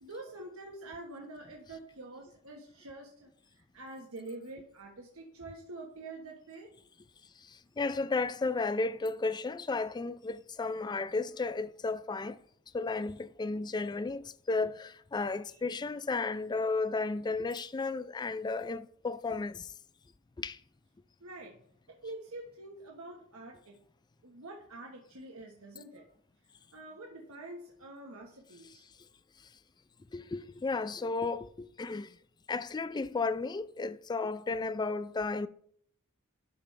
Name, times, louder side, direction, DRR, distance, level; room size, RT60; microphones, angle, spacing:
voice 1, 0.0-3.3 3.6-6.7 15.5-15.6 21.2-21.6 22.0-23.7 24.2-26.1 26.7-28.8, right 2 dB, 85° right, 1.3 m, -46 dB
voice 2, 7.4-12.4 12.7-19.7 20.4-20.6 30.1-32.2 32.5-35.5, left 3 dB, 20° left, 0.3 m, -33 dB
11.5 x 5.0 x 3.3 m
head